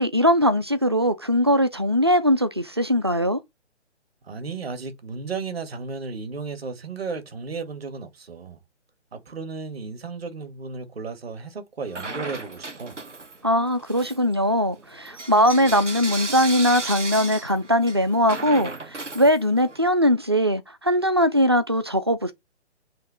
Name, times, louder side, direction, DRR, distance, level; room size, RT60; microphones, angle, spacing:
voice 1, 0.0-3.4 13.4-22.3, equal, 25° right, 0.3 m, -21 dB
voice 2, 4.2-8.6 9.1-13.0, right 4 dB, 60° right, 2.1 m, -34 dB
Bell / Coin (dropping), 11.9-13.5 13.8-19.8, right 3 dB, 90° right, 1.4 m, -35 dB
7.6 x 2.8 x 4.9 m
figure-of-eight pair, 145°, 35 cm